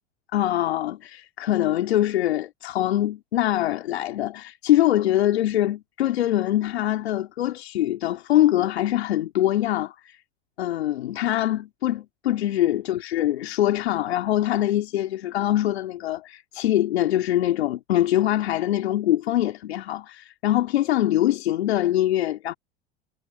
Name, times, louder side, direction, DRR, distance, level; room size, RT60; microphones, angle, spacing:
voice 1, 0.3-10.2 10.6-22.5, left 13 dB, 75° left, 3.4 m, -23 dB
hypercardioid pair, 85°, 32 cm